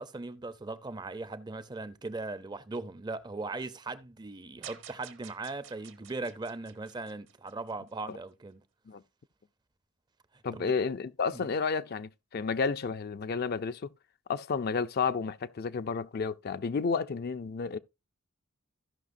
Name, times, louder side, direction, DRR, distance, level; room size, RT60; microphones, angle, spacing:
voice 1, 0.0-8.6 10.5-10.7 11.3-11.5, right 3 dB, 20° right, 0.5 m, -39 dB
sound 1, 4.6-7.9, right 10 dB, 60° right, 0.9 m, -50 dB
voice 2, 10.4-13.9 14.3-17.8, left 5 dB, 45° left, 0.4 m, -31 dB
16.0 x 5.7 x 2.5 m
head